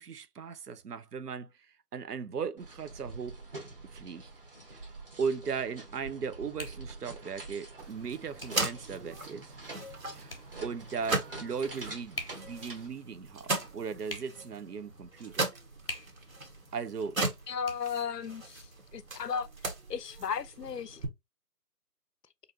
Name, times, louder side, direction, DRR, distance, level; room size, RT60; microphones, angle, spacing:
voice 1, 0.0-3.4 3.8-4.3 4.7-9.6 10.1-13.5 13.7-15.5 16.7-17.2, right 6 dB, 75° right, 0.6 m, -37 dB
sound 1, 2.6-12.9, right 2 dB, 35° right, 1.1 m, -46 dB
sound 2, 4.1-19.3, left 2 dB, 40° left, 0.6 m, -50 dB
sound 3, 7.8-21.1, right 2 dB, 55° right, 1.1 m, -38 dB
voice 2, 17.5-19.5 19.9-21.0, left 7 dB, 80° left, 0.6 m, -35 dB
3.9 x 2.6 x 2.6 m
figure-of-eight pair, 165°, 48 cm